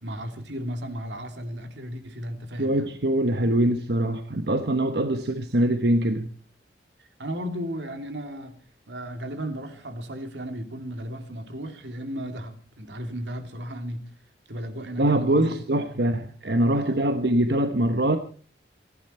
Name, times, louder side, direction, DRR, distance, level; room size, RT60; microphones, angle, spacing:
voice 1, 0.0-2.9 7.0-8.6 8.9-14.1 14.5-15.6 15.9-16.1 16.7-17.1, equal, 90° right, 2.8 m, -35 dB
voice 2, 2.6-6.3 15.0-18.2, right 1 dB, 70° right, 1.1 m, -23 dB
27.0 x 11.5 x 4.4 m
head